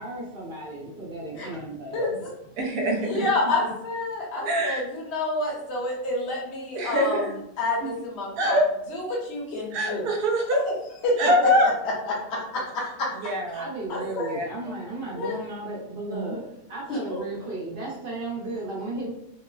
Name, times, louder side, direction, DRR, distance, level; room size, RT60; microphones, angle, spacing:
voice 1, 0.0-2.2 2.9-3.7 5.9-6.0 7.8-8.1 13.5-19.1, right 2 dB, 55° right, -4 dB, 0.6 m, -35 dB
voice 2, 1.9-2.3 3.0-7.3 7.6-8.6 8.9-10.1 10.7-10.8 11.0-11.2 12.1-13.1 13.9-14.3 15.2-15.3 16.9-17.2, left 2 dB, 50° left, -4 dB, 1.0 m, -29 dB
voice 3, 2.6-3.2 4.4-4.8 6.7-7.3 8.4-8.7 9.7-10.6 11.2-11.7 13.2-13.7 14.3-14.4 16.1-16.2, equal, 75° right, 1 dB, 1.1 m, -23 dB
2.9 x 2.0 x 2.3 m, 0.78 s
omnidirectional pair, 1.7 m